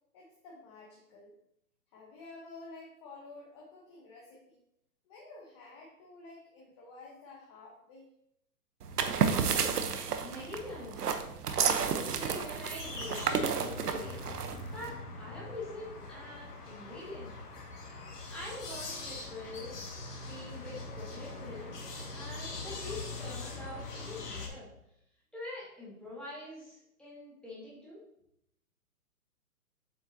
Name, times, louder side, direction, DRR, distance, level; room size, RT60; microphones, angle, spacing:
voice 1, 0.1-1.3 1.9-4.6 5.1-8.1, left 3 dB, 20° left, -2 dB, 0.8 m, -51 dB
sound 1, 8.8-14.9, right 6 dB, 80° right, 0.9 m, -31 dB
voice 2, 10.2-11.1 11.7-14.2 14.7-17.3 18.3-19.9 20.2-21.7 22.1-24.7 25.3-28.0, left 1 dB, ahead, -8 dB, 2.0 m, -45 dB
sound 2, 12.8-24.5, left 3 dB, 85° left, 2.0 m, -42 dB
7.5 x 5.5 x 2.8 m, 0.77 s
hypercardioid pair, 150°, 46 cm